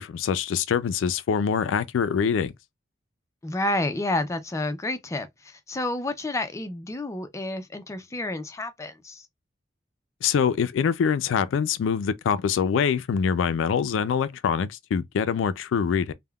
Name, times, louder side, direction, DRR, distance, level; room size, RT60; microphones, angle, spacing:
voice 1, 0.0-2.5 10.2-16.1, left 7 dB, 85° left, 0.3 m, -24 dB
voice 2, 3.4-9.3, left 2 dB, 15° left, 0.4 m, -30 dB
3.4 x 2.1 x 2.2 m
head